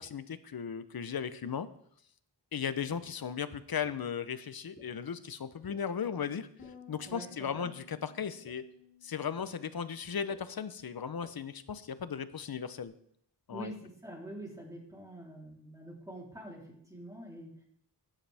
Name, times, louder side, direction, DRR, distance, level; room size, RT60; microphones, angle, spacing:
voice 1, 0.0-1.7 2.5-6.5 6.9-8.6 9.0-12.9 13.5-13.7, left 7 dB, 55° left, 13 dB, 0.8 m, -36 dB
sound 1, 3.8-3.9 4.7-4.8 5.7-5.8 6.6-6.7 7.5-7.6 8.4-8.5 9.4-9.5 10.3-10.4 11.2-11.3, left 1 dB, 10° left, 2.7 m, -53 dB
Bass guitar, 6.6-12.8, left 6 dB, 80° left, 2.7 m, -59 dB
voice 2, 7.1-7.7 13.5-17.6, right 1 dB, 10° right, -3 dB, 3.5 m, -46 dB
15.5 x 9.9 x 3.5 m, 0.67 s
wide cardioid pair, 115°, 43 cm